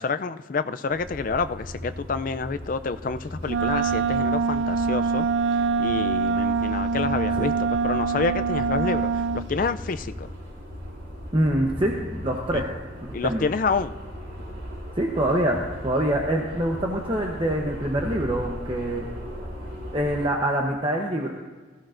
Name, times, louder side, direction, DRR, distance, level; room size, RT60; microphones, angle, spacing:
voice 1, 0.0-5.3 5.8-7.5 7.8-10.3 12.5-12.6 13.1-13.9, left 4 dB, 40° left, 11 dB, 0.4 m, -28 dB
sound 1, 0.9-20.3, equal, 80° right, 4.4 m, -37 dB
Wind instrument woodwind instrument, 3.5-9.5, right 5 dB, 60° right, 0.3 m, -24 dB
voice 2, 11.3-12.7 13.0-13.5 14.9-19.0 19.9-21.3, right 1 dB, 25° right, 0 dB, 0.9 m, -25 dB
19.0 x 14.0 x 2.6 m, 1.4 s
head